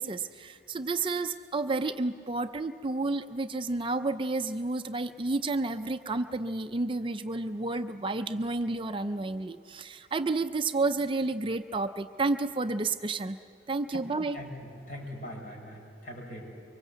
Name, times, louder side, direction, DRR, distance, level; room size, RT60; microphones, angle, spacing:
voice 1, 0.0-13.4 13.7-14.4, right 3 dB, 30° right, 9 dB, 0.5 m, -31 dB
voice 2, 14.3-16.5, equal, 50° left, 1 dB, 5.5 m, -42 dB
24.0 x 24.0 x 8.1 m, 2.4 s
head